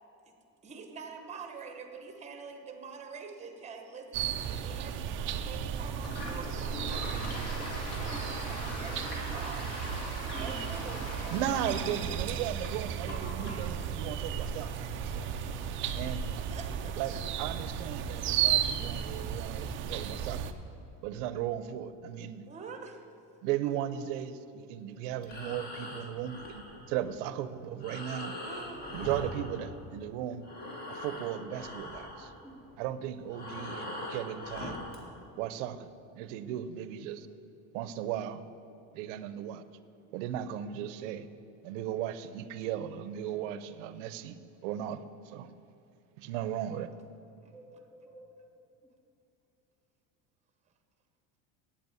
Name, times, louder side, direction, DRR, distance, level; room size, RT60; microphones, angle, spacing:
voice 1, 0.6-9.7 10.3-11.3 11.7-11.8 12.1-12.5 16.5-17.2 22.4-23.0 28.3-28.9 47.4-47.5, right 5 dB, 20° right, 5 dB, 1.0 m, -46 dB
sound 1, 4.1-20.5, right 8 dB, 35° right, 0.5 m, -34 dB
Toilet flush, 5.9-19.3, left 1 dB, 40° left, 2.5 m, -44 dB
voice 2, 7.1-7.7 8.1-9.0 9.3-9.4 10.3-11.4 13.4-13.6 32.3-32.6 47.4-48.2, right 1 dB, 5° left, -5 dB, 3.1 m, -50 dB
voice 3, 11.3-15.3 15.9-16.4 17.0-20.5 21.0-22.5 23.4-28.3 28.9-30.4 30.9-32.3 32.8-34.8 35.4-35.9 36.2-37.3 37.7-38.4 38.9-39.6 40.1-41.3 41.6-44.4 44.6-45.5 46.2-46.9, right 10 dB, 85° right, 13 dB, 0.8 m, -36 dB
Breathing, 25.1-30.1 30.4-35.1, left 1 dB, 25° left, 1.5 m, -42 dB
8.7 x 8.3 x 9.0 m, 2.7 s
cardioid pair, 160°, 36 cm